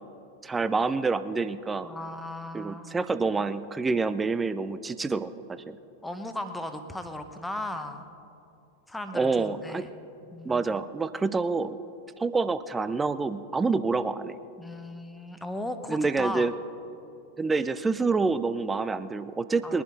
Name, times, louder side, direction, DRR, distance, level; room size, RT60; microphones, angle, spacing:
voice 1, 0.4-1.9 2.5-5.8 9.1-9.9 10.4-11.8 12.2-14.4 15.9-16.5 17.4-19.8, right 4 dB, 15° right, 14 dB, 0.5 m, -27 dB
voice 2, 1.8-2.9 6.0-8.0 8.9-9.9 10.3-10.7 14.6-16.5 19.6-19.8, left 1 dB, 5° left, 7 dB, 1.0 m, -36 dB
21.5 x 11.0 x 3.9 m, 2.7 s
figure-of-eight pair, 90°, 0 cm